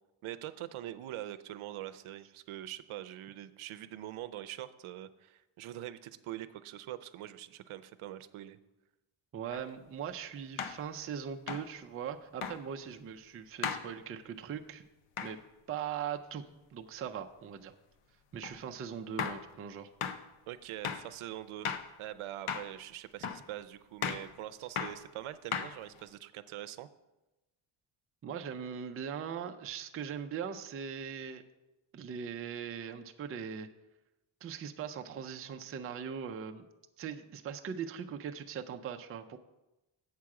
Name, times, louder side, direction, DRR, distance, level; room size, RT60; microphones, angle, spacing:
voice 1, 0.2-8.6 20.5-21.7 22.0-26.9, right 13 dB, 80° right, 12 dB, 0.6 m, -43 dB
voice 2, 9.3-14.8 15.2-15.4 15.7-16.4 16.7-17.7 18.3-19.9 28.2-31.4 31.9-33.7 34.4-36.7 37.0-39.4, right 7 dB, 30° right, 5 dB, 0.4 m, -40 dB
sound 1, 9.5-9.6 10.6-10.8 11.5-11.7 12.4-12.6 13.6-13.9 15.2-15.4 18.4-18.6 19.2-19.4 20.0-20.2 20.8-21.1 21.6-21.9 22.5-22.7 23.2-23.5 24.0-24.3 24.8-25.0 25.5-26.0, left 7 dB, 80° left, 0.7 m, -36 dB
7.4 x 7.4 x 4.7 m, 0.99 s
cardioid pair, 155°, 48 cm